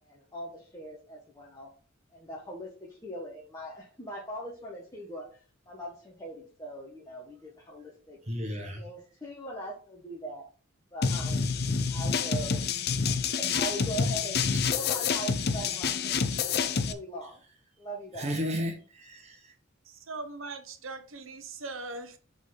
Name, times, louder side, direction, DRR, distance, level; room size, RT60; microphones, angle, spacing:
voice 1, 0.0-1.7 2.1-8.2 8.8-10.4 10.9-11.5 11.9-12.6 13.0-16.2 16.4-17.4 17.8-18.4, right 1 dB, 15° left, 1.2 m, -41 dB
voice 2, 8.2-8.8 18.1-19.5, equal, 35° right, 1.3 m, -34 dB
sound 1, 11.0-16.9, left 5 dB, 50° left, 0.6 m, -28 dB
voice 3, 19.9-22.2, right 3 dB, 80° right, 1.0 m, -40 dB
8.2 x 4.0 x 3.9 m
head